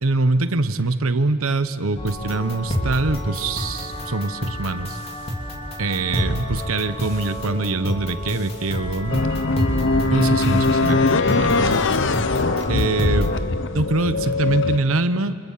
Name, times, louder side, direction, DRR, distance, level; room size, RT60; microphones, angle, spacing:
voice 1, 0.0-5.0 5.8-9.3 10.0-11.8 12.7-13.4 13.7-15.4, right 2 dB, 90° right, 11 dB, 1.1 m, -23 dB
sound 1, 2.0-13.3, equal, 30° left, 3.0 m, -29 dB
sound 2, 9.1-14.8, left 3 dB, 60° left, 0.9 m, -21 dB
29.0 x 26.5 x 7.5 m, 2.1 s
head